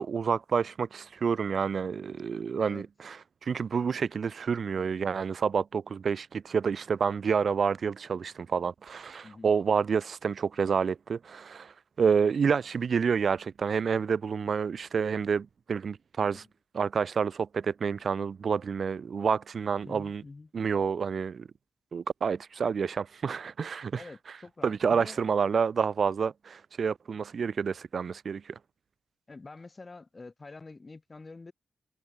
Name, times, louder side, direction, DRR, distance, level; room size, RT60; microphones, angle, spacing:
voice 1, 0.0-3.2 3.4-16.4 16.7-20.2 20.5-21.5 21.9-24.0 24.6-28.6, right 6 dB, 60° right, 0.5 m, -29 dB
voice 2, 19.8-20.5 24.0-25.2 29.3-31.5, left 3 dB, 35° left, 5.2 m, -47 dB
supercardioid pair, 55°, 0 cm